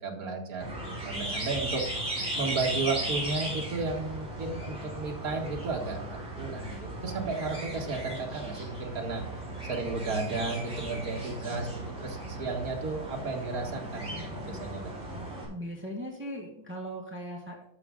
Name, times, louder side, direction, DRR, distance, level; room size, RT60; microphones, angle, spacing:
voice 1, 0.0-1.8 2.4-9.2 9.7-11.7 12.0-14.9, right 3 dB, 70° right, 1 dB, 2.1 m, -33 dB
sound 1, 0.6-15.4, right 1 dB, 50° right, 4.3 m, -36 dB
voice 2, 15.5-17.6, equal, 10° right, -2 dB, 1.6 m, -38 dB
12.5 x 6.0 x 3.8 m, 0.77 s
omnidirectional pair, 1.6 m